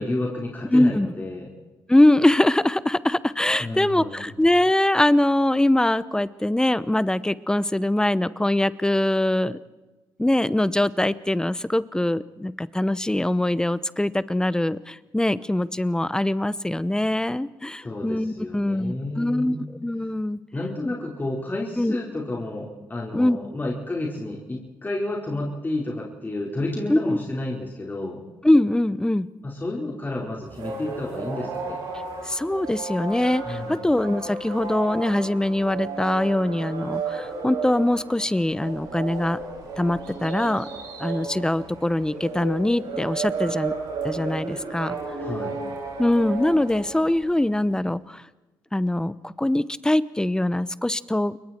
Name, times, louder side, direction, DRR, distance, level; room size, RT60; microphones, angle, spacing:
voice 1, 0.0-1.5 3.6-4.3 17.8-19.8 20.5-28.2 29.4-31.8 33.4-33.9 45.2-45.6, left 2 dB, 25° left, -2 dB, 4.8 m, -31 dB
voice 2, 0.7-1.1 1.9-9.6 10.2-20.4 21.8-21.9 23.1-23.4 26.9-27.2 28.4-29.3 32.3-39.4 39.8-40.7 41.0-43.7 44.0-45.0 46.0-48.2 48.7-51.4, left 1 dB, 10° left, 16 dB, 1.0 m, -22 dB
sound 1, 30.5-47.5, right 4 dB, 85° right, 7.2 m, -33 dB
29.0 x 22.5 x 4.6 m, 1.2 s
supercardioid pair, 65°, 8 cm